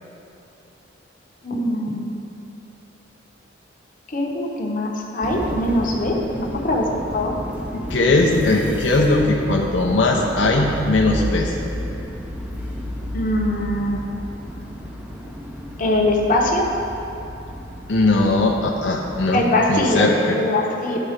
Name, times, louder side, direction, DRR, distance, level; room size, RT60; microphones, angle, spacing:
voice 1, 1.4-2.1 4.1-7.3 13.1-14.0 15.8-16.7 19.3-20.1 20.3-21.0, left 1 dB, 45° left, 0 dB, 1.0 m, -22 dB
sound 1, 5.2-19.3, equal, 5° right, 0.7 m, -32 dB
voice 2, 7.7-11.5 17.9-19.4 19.7-20.4, left 2 dB, 70° left, -2 dB, 0.7 m, -19 dB
12.0 x 4.2 x 5.1 m, 2.9 s
head